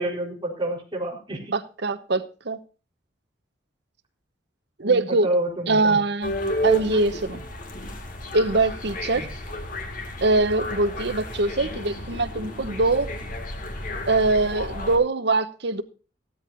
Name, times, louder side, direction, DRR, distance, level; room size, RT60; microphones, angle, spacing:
voice 1, 0.0-1.5 4.8-6.0 9.1-9.3, right 1 dB, 25° right, -2 dB, 4.1 m, -29 dB
voice 2, 1.5-2.6 4.8-5.3 5.7-6.3 6.6-7.4 8.3-9.3 10.2-13.1 14.1-15.8, right 2 dB, 65° right, 11 dB, 1.0 m, -23 dB
sound 1, 6.2-15.0, left 1 dB, 45° left, 2.1 m, -32 dB
15.5 x 13.0 x 2.6 m, 0.34 s
head